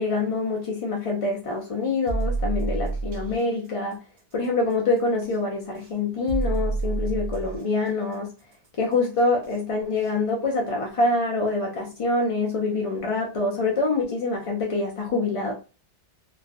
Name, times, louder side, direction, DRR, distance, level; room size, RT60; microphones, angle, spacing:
voice 1, 0.0-4.0 4.3-8.3 8.8-15.5, left 3 dB, 55° left, 0.3 m, -25 dB
sound 1, 2.1-3.4 5.2-5.3 6.3-7.6 9.4-9.5 10.0-10.1, right 3 dB, 50° right, 0.5 m, -27 dB
2.4 x 2.3 x 2.4 m
omnidirectional pair, 1.2 m